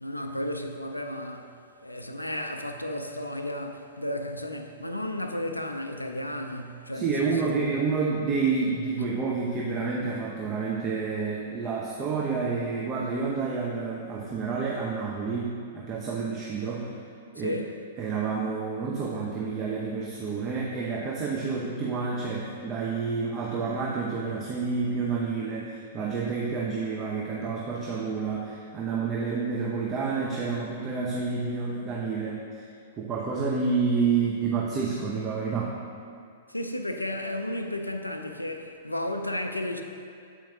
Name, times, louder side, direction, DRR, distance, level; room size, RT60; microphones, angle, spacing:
voice 1, 0.0-1.6 1.8-7.8 17.4-17.7 36.5-39.8, left 1 dB, 85° left, 0.4 m, -33 dB
voice 2, 6.9-16.9 17.3-17.6 18.0-32.7 33.0-35.8, right 4 dB, 25° right, 0.6 m, -29 dB
7.8 x 4.4 x 2.7 m
figure-of-eight pair, 105°, 0 cm